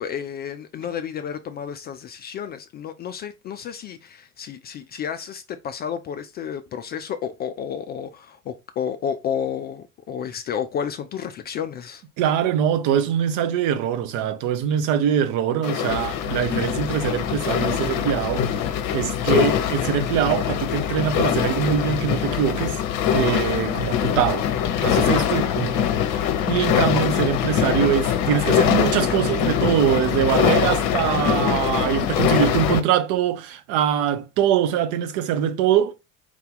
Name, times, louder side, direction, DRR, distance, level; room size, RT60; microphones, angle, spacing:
voice 1, 0.0-12.0, left 8 dB, 25° left, 0.4 m, -31 dB
voice 2, 12.2-18.5 18.9-22.8 23.1-24.5 24.8-25.9 26.1-26.2 26.5-35.9, right 9 dB, 50° right, 0.8 m, -23 dB
sound 1, 15.6-32.8, left 9 dB, 50° left, 0.8 m, -23 dB
4.9 x 2.7 x 3.7 m
figure-of-eight pair, 65°, 41 cm